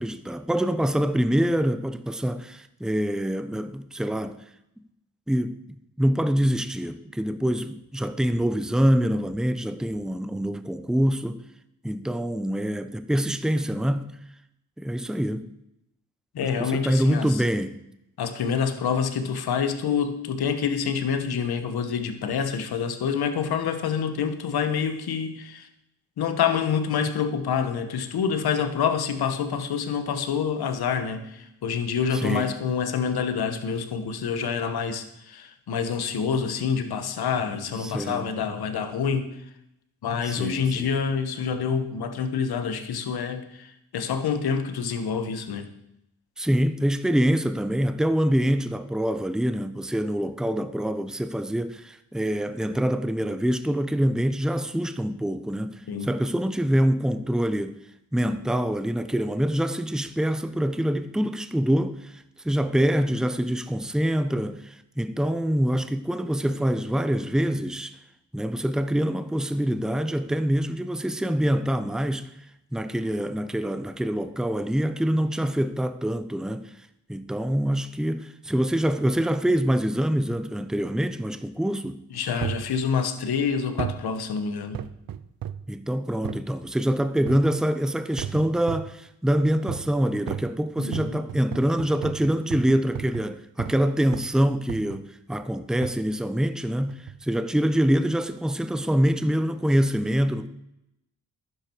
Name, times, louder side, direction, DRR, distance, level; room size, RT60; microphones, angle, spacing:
voice 1, 0.0-4.4 5.3-11.4 11.8-14.1 14.8-15.5 16.4-17.8 32.1-32.5 37.8-38.6 40.3-40.9 46.4-57.8 58.1-68.0 68.3-72.3 72.7-76.7 77.1-82.0 85.7-100.5, equal, ahead, 0.8 m, -25 dB
voice 2, 16.3-17.4 18.2-25.7 26.2-39.3 40.0-45.7 55.9-56.1 82.1-84.8 90.8-91.2, left 6 dB, 85° left, 1.3 m, -27 dB
sound 1, 82.4-82.7 83.8-84.1 84.7-85.7 86.2-86.5 87.3-87.6 88.2-89.0 89.7-90.0 90.3-93.8 94.1-94.4 94.7-95.1 95.8-96.0 96.9-97.2 97.8-97.9, right 10 dB, 65° right, 0.7 m, -35 dB
12.0 x 9.9 x 4.6 m
cardioid pair, 60°, 37 cm